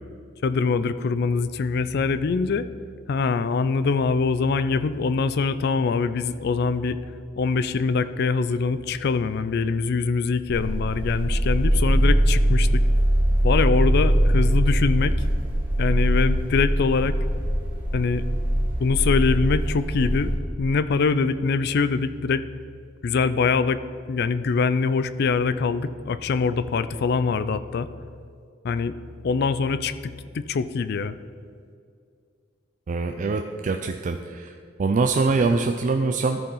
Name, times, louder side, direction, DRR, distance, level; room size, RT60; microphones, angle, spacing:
voice 1, 0.4-2.7 3.1-7.0 7.4-12.8 13.4-15.2 15.8-17.2 17.9-18.2 18.8-20.3 20.6-22.4 23.0-23.8 24.1-27.9 28.6-28.9 29.2-31.2, left 4 dB, 55° left, 13 dB, 0.4 m, -23 dB
sound 1, 10.5-20.4, equal, 10° right, 2.1 m, -22 dB
voice 2, 32.9-34.5 34.8-36.4, right 4 dB, 40° right, 5 dB, 0.4 m, -23 dB
13.0 x 4.7 x 5.5 m, 2.3 s
head